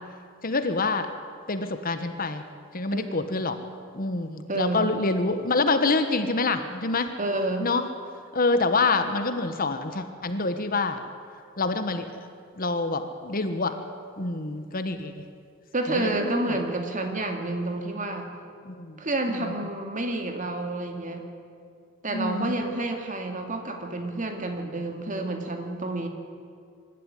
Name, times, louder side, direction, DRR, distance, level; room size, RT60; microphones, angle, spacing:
voice 1, 0.4-1.1 1.5-2.4 2.7-3.6 3.9-7.1 7.6-7.8 8.3-11.0 11.6-12.1 12.6-13.7 14.2-15.2 15.9-16.5 18.6-19.0 22.1-22.6, left 3 dB, 45° left, 9 dB, 1.2 m, -26 dB
voice 2, 2.9-3.3 4.5-4.9 7.2-7.7 15.7-18.3 19.0-21.3 22.0-26.1, right 2 dB, 35° right, 4 dB, 2.3 m, -29 dB
24.5 x 12.5 x 9.8 m, 2.2 s
head